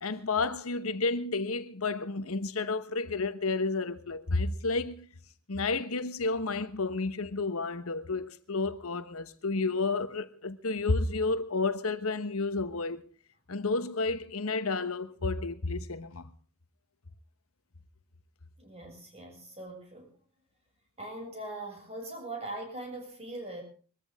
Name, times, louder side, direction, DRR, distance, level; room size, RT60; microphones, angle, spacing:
voice 1, 0.0-5.0 5.5-13.0 13.5-16.3, left 3 dB, 75° left, 1.2 m, -31 dB
voice 2, 18.6-20.1 21.0-23.6, right 2 dB, 30° right, 7.0 m, -41 dB
22.5 x 14.0 x 3.6 m
head